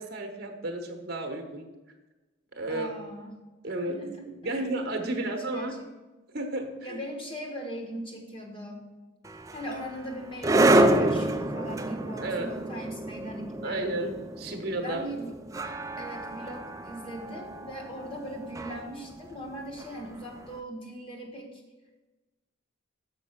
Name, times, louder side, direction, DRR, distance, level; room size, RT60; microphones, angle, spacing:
voice 1, 0.0-1.7 2.5-2.9 3.6-4.0 4.4-5.7 6.3-7.0 12.2-12.5 13.6-15.1, right 2 dB, 50° right, 5 dB, 0.9 m, -32 dB
voice 2, 2.7-3.3 3.8-4.7 5.0-5.9 6.8-8.9 9.5-13.9 14.5-15.3 16.0-21.6, equal, 25° left, 2 dB, 1.2 m, -39 dB
sound 1, 9.3-20.4, right 1 dB, 15° right, 0.3 m, -28 dB
6.5 x 5.9 x 5.6 m, 1.1 s
head